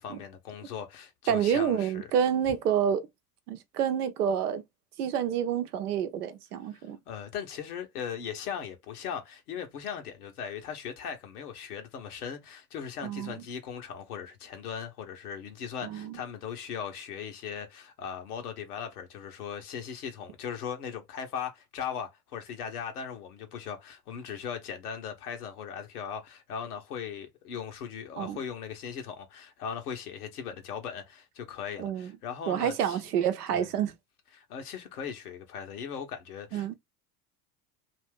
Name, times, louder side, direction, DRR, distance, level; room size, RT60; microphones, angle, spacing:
voice 1, 0.0-2.1 6.7-33.0 33.5-33.7 34.3-36.8, left 7 dB, 80° left, 1.1 m, -38 dB
voice 2, 1.3-3.1 3.5-4.6 5.0-7.0 13.0-13.4 15.8-16.2 28.2-28.4 31.8-32.1 32.5-33.9 36.5-36.7, right 8 dB, 85° right, 0.7 m, -28 dB
2.8 x 2.7 x 3.5 m
hypercardioid pair, 75°, 45 cm